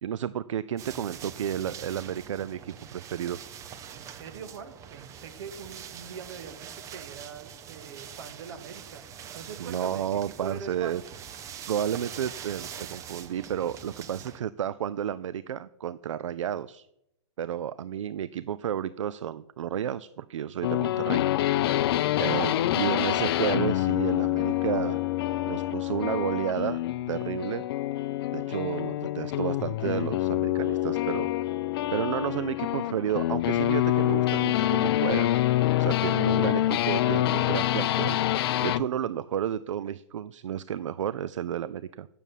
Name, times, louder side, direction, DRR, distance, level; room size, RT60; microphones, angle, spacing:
voice 1, 0.0-3.4 9.6-11.0 11.7-16.9 17.4-21.2 22.2-25.0 25.5-26.8 27.1-27.6 28.3-31.3 31.9-35.4 35.8-38.2 38.6-42.1, right 10 dB, 80° right, 16 dB, 0.4 m, -31 dB
sound 1, 0.8-14.4, right 8 dB, 20° right, 0.6 m, -44 dB
voice 2, 3.9-9.0 9.3-11.0, right 6 dB, 60° right, 7 dB, 1.9 m, -43 dB
sound 2, 20.6-38.9, left 14 dB, 50° left, 0.6 m, -26 dB
9.2 x 7.0 x 8.2 m, 0.81 s
hypercardioid pair, 140°, 16 cm